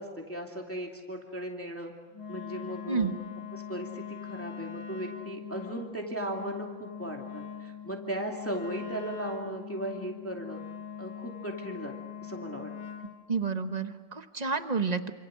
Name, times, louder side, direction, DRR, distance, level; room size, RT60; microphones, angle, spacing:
voice 1, 0.0-1.9 2.3-3.1 3.5-10.6 11.0-11.9 12.2-12.7, right 1 dB, 5° left, 1 dB, 2.3 m, -37 dB
Wind instrument woodwind instrument, 2.1-13.1, left 7 dB, 80° left, 6.0 m, -42 dB
voice 2, 13.3-15.1, right 4 dB, 30° right, 9 dB, 0.8 m, -30 dB
27.5 x 27.0 x 6.5 m, 1.3 s
omnidirectional pair, 2.1 m